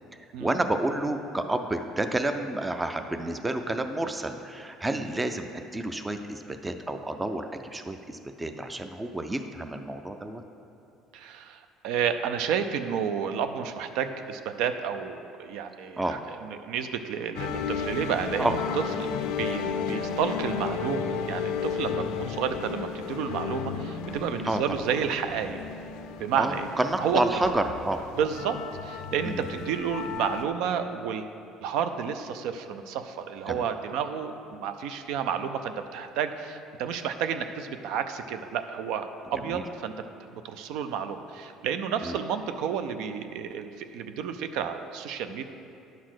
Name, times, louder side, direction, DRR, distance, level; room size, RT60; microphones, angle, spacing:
voice 1, 0.4-10.4 16.0-16.2 18.4-18.6 21.9-22.1 24.4-24.6 26.4-28.0 29.3-29.4 33.5-33.6 39.5-39.6 42.0-42.2, right 2 dB, 10° right, 7 dB, 0.4 m, -30 dB
voice 2, 11.1-19.1 19.4-25.6 26.2-26.7 27.0-27.2 28.2-31.3 31.6-39.9 40.3-45.4, right 7 dB, 75° right, 9 dB, 0.5 m, -31 dB
sound 1, 17.4-30.4, left 7 dB, 80° left, 0.4 m, -33 dB
10.5 x 4.1 x 6.3 m, 2.6 s
cardioid pair, 150°, 0 cm